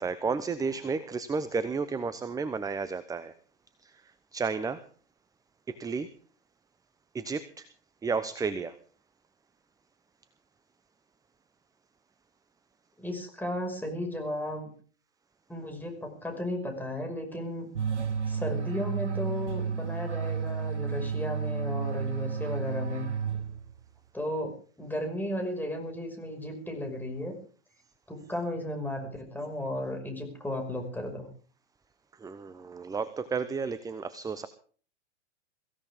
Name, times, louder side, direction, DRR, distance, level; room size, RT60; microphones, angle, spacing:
voice 1, 0.0-3.3 3.8-4.0 4.3-4.8 5.7-6.1 7.1-7.7 8.0-8.8 32.2-34.5, right 5 dB, 10° right, 14 dB, 0.8 m, -32 dB
voice 2, 13.0-14.7 15.5-17.7 18.3-23.1 24.1-27.4 28.1-31.3, left 1 dB, 5° left, 3 dB, 5.7 m, -34 dB
sound 1, 17.8-23.9, right 6 dB, 90° right, 1.7 m, -32 dB
23.0 x 16.0 x 3.7 m, 0.43 s
hypercardioid pair, 105°, 34 cm